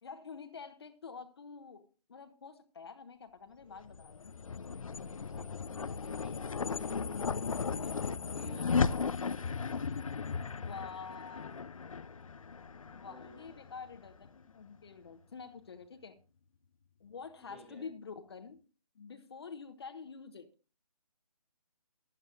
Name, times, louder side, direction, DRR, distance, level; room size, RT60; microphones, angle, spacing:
voice 1, 0.0-4.3 10.5-11.6 12.9-16.1 17.0-18.6 18.9-20.5, left 5 dB, 40° left, 6 dB, 1.1 m, -47 dB
sound 1, 3.8-14.3, left 5 dB, 55° left, 0.6 m, -36 dB
voice 2, 4.9-6.9 7.4-9.3 12.9-13.6 17.5-17.9, equal, 5° right, 1 dB, 1.8 m, -55 dB
15.0 x 11.0 x 2.5 m, 0.35 s
figure-of-eight pair, 150°, 20 cm